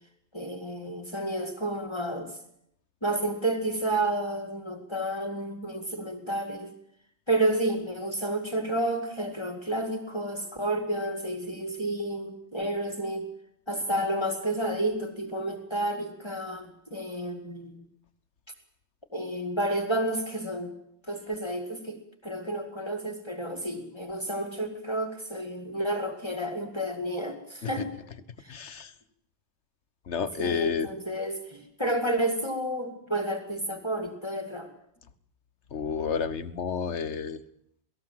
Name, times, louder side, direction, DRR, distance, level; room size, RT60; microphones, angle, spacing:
voice 1, 0.3-2.4 3.0-6.7 7.3-13.3 13.7-17.8 19.1-20.8 21.1-22.0 22.2-27.9 28.4-28.6 30.4-34.7, right 1 dB, 25° left, 5 dB, 2.4 m, -30 dB
voice 2, 28.5-28.9 30.1-30.9 35.7-37.4, left 6 dB, 90° left, 14 dB, 1.5 m, -30 dB
28.5 x 18.5 x 7.8 m, 0.75 s
omnidirectional pair, 1.1 m